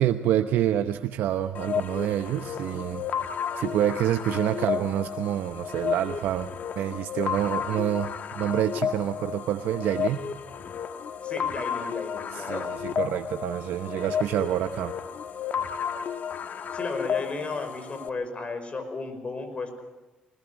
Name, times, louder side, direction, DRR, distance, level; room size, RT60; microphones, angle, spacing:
voice 1, 0.0-3.1 3.6-10.2 12.3-14.9, right 11 dB, 75° right, 8 dB, 0.9 m, -27 dB
sound 1, 1.5-18.1, left 8 dB, 55° left, 1.4 m, -32 dB
voice 2, 11.2-12.7 16.7-19.8, left 3 dB, 35° left, 9 dB, 5.5 m, -34 dB
20.5 x 20.5 x 6.3 m, 1.1 s
cardioid pair, 75°, 3 cm